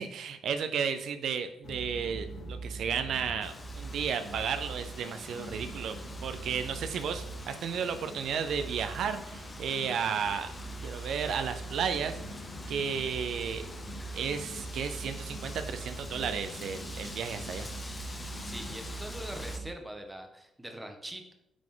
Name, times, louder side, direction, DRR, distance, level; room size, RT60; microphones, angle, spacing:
voice 1, 0.0-10.5 10.8-12.4 12.7-13.7 14.1-17.7, right 7 dB, 70° right, 8 dB, 0.5 m, -33 dB
sound 1, 1.6-19.7, right 2 dB, 65° left, 1.4 m, -42 dB
Wind, 3.4-19.6, left 2 dB, 25° left, 0.9 m, -46 dB
voice 2, 18.4-21.3, right 1 dB, 10° right, 4 dB, 1.1 m, -43 dB
9.7 x 3.8 x 3.8 m, 0.86 s
cardioid pair, 90°, 0 cm